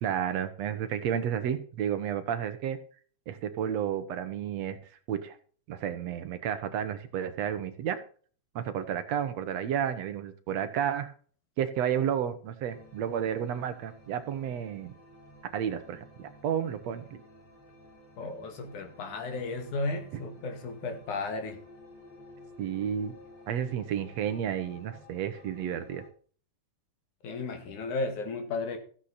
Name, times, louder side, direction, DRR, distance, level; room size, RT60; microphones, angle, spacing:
voice 1, 0.0-2.8 3.3-4.8 5.1-5.4 5.7-8.0 8.6-11.1 11.6-14.9 15.5-17.2 22.6-23.1 23.5-26.0, right 9 dB, 65° right, 2.2 m, -31 dB
sound 1, 12.7-26.1, left 1 dB, 70° left, 7.9 m, -53 dB
voice 2, 18.2-21.6 27.2-28.8, left 3 dB, 90° left, 3.6 m, -34 dB
14.5 x 8.3 x 4.3 m
omnidirectional pair, 3.4 m